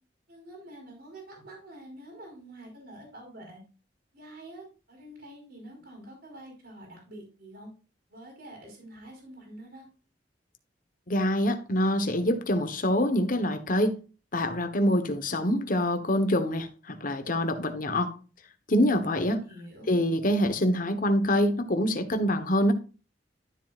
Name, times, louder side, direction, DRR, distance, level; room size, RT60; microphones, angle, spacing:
voice 1, 0.3-3.6 4.1-7.7 8.1-9.9 19.0-20.0, right 1 dB, 65° right, 4.6 m, -47 dB
voice 2, 11.1-13.9 14.3-18.1 18.7-19.4 19.9-22.7, equal, 50° left, 1.2 m, -25 dB
12.5 x 7.5 x 2.5 m
head